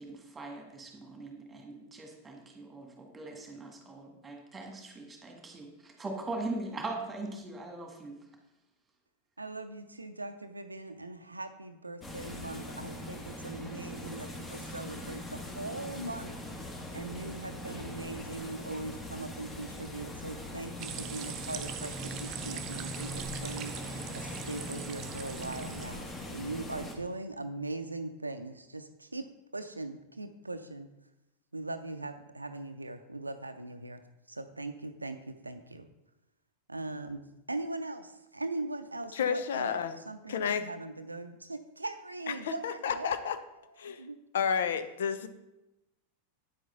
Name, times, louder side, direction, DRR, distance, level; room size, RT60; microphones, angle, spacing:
voice 1, 0.0-8.2, right 2 dB, 15° right, 2 dB, 1.9 m, -41 dB
voice 2, 9.4-16.3 16.9-23.7 24.1-29.3 29.5-30.9 31.5-34.0 34.3-35.9 36.7-37.2 37.5-39.7 40.1-43.2 43.8-44.2, right 2 dB, 80° right, 8 dB, 0.5 m, -40 dB
sound 1, 12.0-26.9, left 1 dB, 15° left, 1.6 m, -42 dB
sound 2, 20.8-25.9, right 6 dB, 35° right, 0.9 m, -41 dB
voice 3, 39.1-40.0 40.3-40.7 42.3-43.4 43.8-44.0 44.3-45.3, left 7 dB, 60° left, 11 dB, 0.7 m, -31 dB
9.4 x 7.6 x 3.9 m, 0.94 s
figure-of-eight pair, 90°, 0 cm